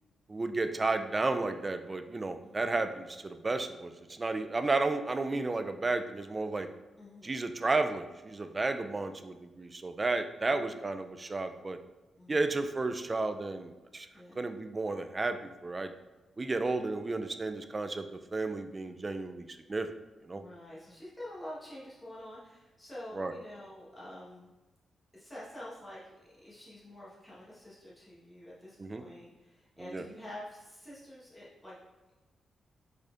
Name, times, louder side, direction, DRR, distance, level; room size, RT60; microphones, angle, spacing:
voice 1, 0.3-6.7 7.2-11.8 12.3-14.1 14.4-15.9 16.4-19.9 20.3-20.4 23.1-23.3 28.8-29.0 29.8-30.0, right 3 dB, 25° right, 9 dB, 0.3 m, -32 dB
voice 2, 2.4-2.8 7.0-7.4 10.5-10.9 12.2-12.4 14.1-14.5 20.3-24.5 25.1-26.1 26.4-31.8, left 1 dB, 10° left, -8 dB, 1.1 m, -47 dB
5.0 x 4.2 x 2.4 m, 1.2 s
cardioid pair, 110°, 0 cm